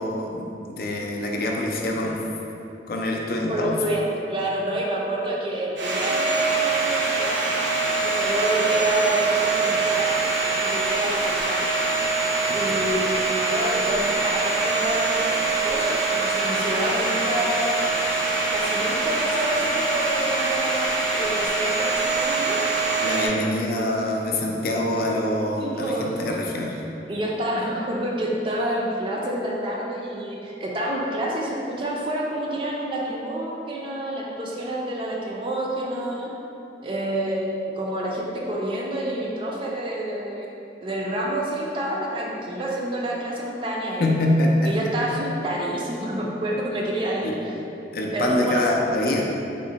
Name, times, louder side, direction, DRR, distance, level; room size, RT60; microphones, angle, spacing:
voice 1, 0.0-2.2 2.9-3.7 23.0-26.8 44.0-44.7 47.2-47.3 47.9-49.3, left 1 dB, 55° left, 0 dB, 0.4 m, -25 dB
voice 2, 3.5-7.4 8.0-10.2 10.6-11.7 12.5-17.7 18.5-20.9 21.1-22.6 25.5-26.2 27.1-36.3 36.8-40.5 40.8-44.1 44.7-47.5 48.1-48.6, right 1 dB, 30° right, -3 dB, 0.4 m, -28 dB
Domestic sounds home sounds, 5.8-23.3, right 3 dB, 80° right, 0.6 m, -24 dB
3.7 x 2.1 x 3.8 m, 2.8 s
head